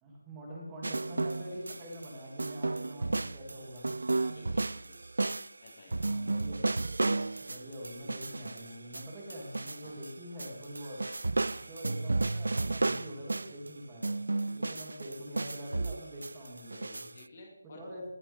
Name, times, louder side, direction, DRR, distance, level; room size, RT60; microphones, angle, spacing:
voice 1, 0.0-3.9 5.9-6.8 7.4-11.0 11.7-14.1 14.5-17.1 17.7-18.0, equal, 10° right, -3 dB, 2.5 m, -44 dB
sound 1, 0.8-2.1 2.4-10.1 10.4-13.7 14.0-17.2, right 2 dB, 80° right, 0.3 m, -33 dB
voice 2, 4.1-5.0 5.6-6.0 9.8-10.0 11.4-11.7 17.1-18.0, left 2 dB, 30° left, 1 dB, 2.2 m, -53 dB
19.0 x 8.2 x 3.5 m, 0.86 s
figure-of-eight pair, 175°, 0 cm